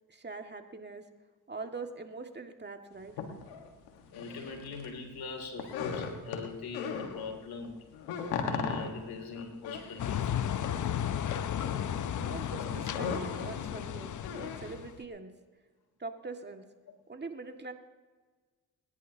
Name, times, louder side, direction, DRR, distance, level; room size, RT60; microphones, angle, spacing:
voice 1, 0.1-1.1 1.5-3.1 12.1-15.3 16.0-16.6 17.1-17.7, right 3 dB, 25° right, 5 dB, 2.0 m, -43 dB
sound 1, 3.1-4.9 5.2-7.3 7.6-14.8, left 6 dB, 90° left, 1.6 m, -38 dB
voice 2, 4.1-7.8 8.3-10.4 12.6-12.8, left 4 dB, 65° left, 4 dB, 3.1 m, -42 dB
sound 2, 10.0-15.0, left 9 dB, 50° left, 0.8 m, -34 dB
28.5 x 11.0 x 2.9 m, 1.4 s
supercardioid pair, 50°, 39 cm